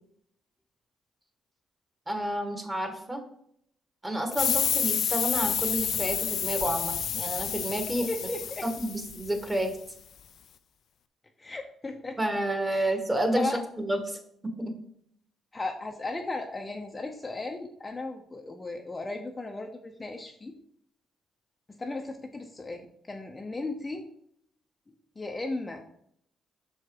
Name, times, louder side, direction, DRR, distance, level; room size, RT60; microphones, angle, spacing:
voice 1, 2.1-3.2 4.0-8.1 8.6-9.7 12.2-13.5 13.8-14.2 14.6-14.7, right 1 dB, 15° right, 4 dB, 1.6 m, -30 dB
sound 1, 4.3-9.6, left 8 dB, 65° left, 0.5 m, -29 dB
voice 2, 8.1-8.6 11.4-12.2 12.7-12.9 13.3-13.6 15.5-20.5 21.8-24.0 25.2-25.8, left 2 dB, 20° left, 2 dB, 0.8 m, -36 dB
6.5 x 4.6 x 4.9 m, 0.69 s
cardioid pair, 90°, 0 cm